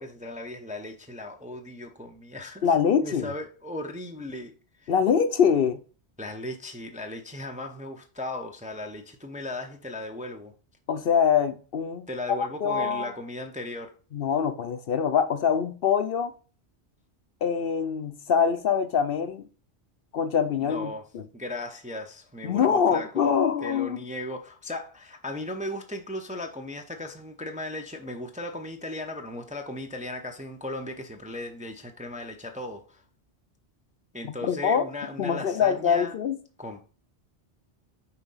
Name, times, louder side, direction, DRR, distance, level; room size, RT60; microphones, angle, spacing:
voice 1, 0.0-2.7 3.0-4.5 4.8-4.9 6.2-10.5 12.1-13.9 20.6-21.0 21.3-23.3 23.6-33.0 34.1-36.1 36.6-36.8, left 1 dB, 10° right, 0.5 m, -37 dB
voice 2, 2.6-3.3 4.9-5.8 10.9-12.1 12.4-13.1 14.1-16.3 17.4-19.5 20.1-21.2 22.4-24.0 34.4-34.8 35.2-36.4, left 7 dB, 60° left, 0.7 m, -24 dB
5.7 x 3.8 x 5.5 m
omnidirectional pair, 1.1 m